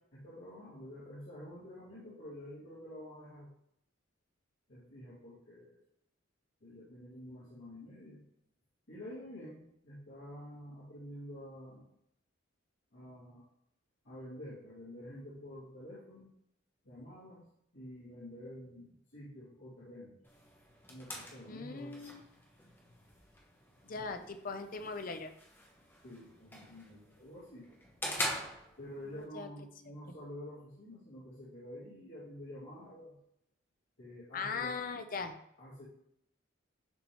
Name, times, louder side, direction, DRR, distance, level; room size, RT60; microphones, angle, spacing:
voice 1, 0.1-3.5 4.7-5.8 6.6-8.2 8.9-11.9 12.9-13.4 14.0-16.3 16.8-17.4 17.7-20.2 20.9-21.9 23.9-24.1 26.0-27.7 28.8-33.2 34.0-34.7 35.6-35.8, left 1 dB, 80° left, -11 dB, 2.3 m, -49 dB
sound 1, 20.2-29.2, left 1 dB, 10° left, 0.8 m, -44 dB
voice 2, 21.5-22.2 23.8-25.3 29.1-29.5 29.9-30.2 34.3-35.3, left 4 dB, 45° left, 8 dB, 0.6 m, -40 dB
10.5 x 3.5 x 3.0 m, 0.76 s
head